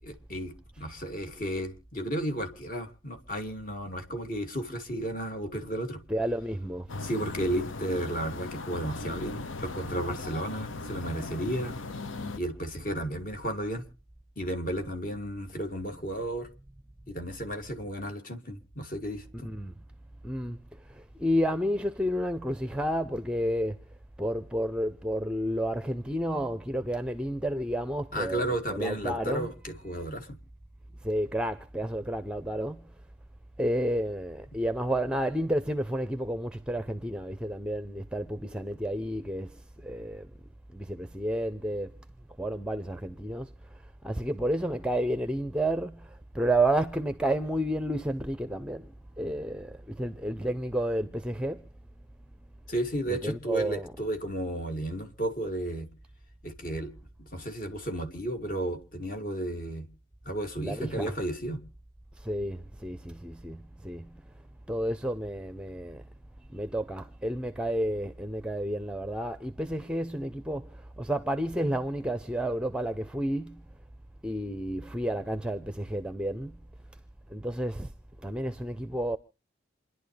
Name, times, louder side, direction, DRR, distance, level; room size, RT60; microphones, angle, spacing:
voice 1, 0.0-6.0 7.0-11.7 12.3-13.8 14.4-16.5 17.1-19.5 28.1-30.4 52.7-55.9 56.4-56.9 57.2-59.9 60.2-61.6, right 1 dB, 45° left, 2.7 m, -33 dB
voice 2, 6.1-6.9 19.4-19.7 20.2-23.8 24.2-28.4 28.7-29.5 31.0-32.9 33.6-40.3 40.7-41.9 42.4-43.7 44.0-48.9 49.2-51.7 53.1-53.9 60.6-61.1 62.2-64.2 64.7-66.0 66.5-73.6 74.2-76.6 77.3-77.9 78.2-79.2, right 1 dB, 5° right, 0.6 m, -31 dB
sound 1, 6.9-12.4, left 3 dB, 85° left, 0.9 m, -38 dB
28.0 x 11.0 x 3.4 m
head